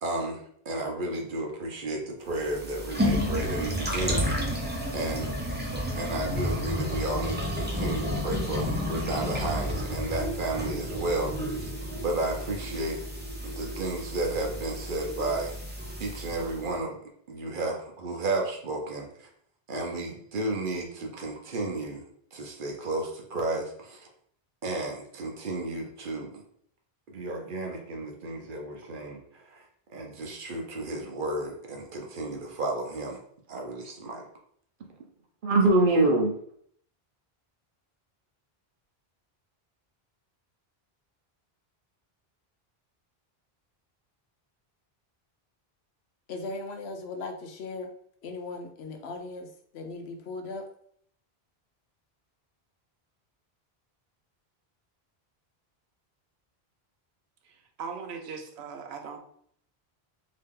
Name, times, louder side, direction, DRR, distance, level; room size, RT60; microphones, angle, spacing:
voice 1, 0.0-4.2 4.9-5.3 5.7-11.7 12.0-13.0 13.4-15.6 16.0-17.0 17.3-19.3 19.7-22.0 22.3-24.1 24.6-26.4 27.1-29.6 29.9-33.2 33.5-34.2 35.4-36.3, right 2 dB, 55° right, 1 dB, 0.9 m, -31 dB
sound 1, 2.3-16.6, equal, 10° right, 0.6 m, -31 dB
voice 2, 46.3-47.9 48.2-49.5 49.7-50.6, left 3 dB, 85° left, 4 dB, 0.9 m, -38 dB
voice 3, 57.8-59.2, right 5 dB, 85° right, 4 dB, 0.9 m, -38 dB
3.0 x 2.7 x 3.6 m, 0.64 s
omnidirectional pair, 1.1 m